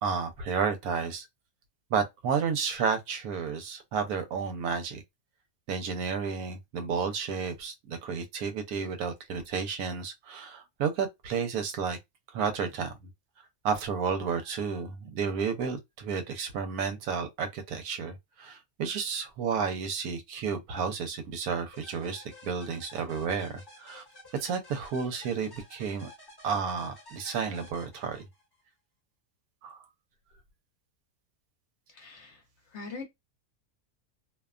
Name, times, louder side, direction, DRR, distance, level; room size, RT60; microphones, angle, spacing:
voice 1, 0.0-1.3 1.9-5.0 5.7-12.0 12.3-12.9 13.6-24.0 24.3-26.1 26.4-28.2 29.6-29.8, right 6 dB, 85° right, 1.1 m, -31 dB
sound 1, 21.7-28.6, left 1 dB, 20° left, 0.9 m, -52 dB
voice 2, 31.9-32.4 32.7-33.1, left 4 dB, 60° left, 0.9 m, -42 dB
2.6 x 2.2 x 2.3 m
omnidirectional pair, 1.5 m